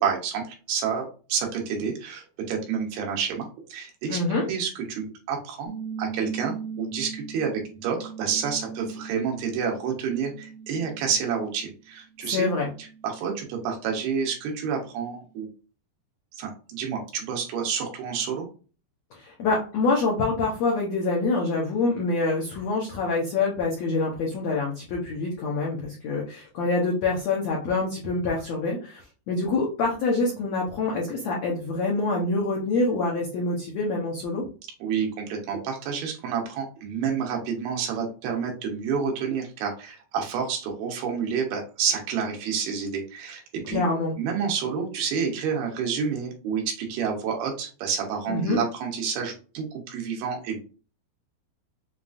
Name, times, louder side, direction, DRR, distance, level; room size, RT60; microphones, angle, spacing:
voice 1, 0.0-4.2 4.5-5.7 6.0-12.5 13.0-15.5 16.3-18.5 34.8-43.8 44.2-50.7, right 6 dB, 90° right, 1 dB, 3.2 m, -29 dB
voice 2, 4.1-4.5 12.2-12.7 19.1-34.4 43.7-44.1 48.3-48.6, left 3 dB, 80° left, -2 dB, 1.5 m, -26 dB
sound 1, 5.6-11.7 12.1-13.5, right 6 dB, 65° right, 1.5 m, -39 dB
7.2 x 2.4 x 2.5 m, 0.35 s
omnidirectional pair, 4.4 m